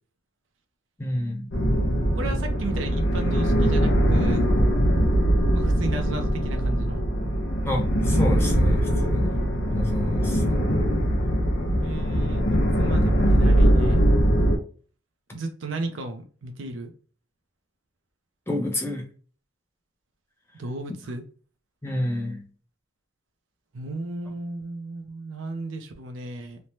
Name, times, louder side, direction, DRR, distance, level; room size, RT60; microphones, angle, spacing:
voice 1, 1.0-1.5 7.7-9.4 9.7-10.4 12.9-13.3 18.5-19.0 21.8-22.4, left 1 dB, 10° left, 2 dB, 0.5 m, -29 dB
sound 1, 1.5-14.6, equal, 65° left, 0.7 m, -21 dB
voice 2, 2.1-4.5 5.5-7.0 11.8-12.4 12.8-14.0 15.3-16.9 20.5-21.2 23.7-26.6, right 2 dB, 85° right, 5 dB, 0.5 m, -34 dB
3.1 x 2.1 x 2.7 m, 0.40 s
head